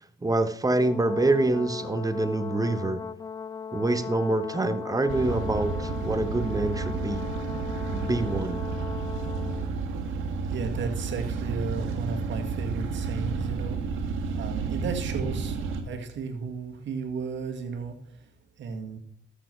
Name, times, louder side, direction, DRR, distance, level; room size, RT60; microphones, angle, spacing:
voice 1, 0.2-3.0 3.7-7.2 7.9-8.6, right 2 dB, 15° right, 11 dB, 1.0 m, -26 dB
Brass instrument, 0.8-9.7, left 6 dB, 20° left, 0.4 m, -38 dB
sound 1, 5.1-15.8, right 4 dB, 90° right, 1.7 m, -31 dB
voice 2, 10.5-13.8 14.3-18.2 18.6-19.0, right 5 dB, 70° right, 5 dB, 1.9 m, -34 dB
13.0 x 6.9 x 4.5 m, 0.62 s
cardioid pair, 90°, 20 cm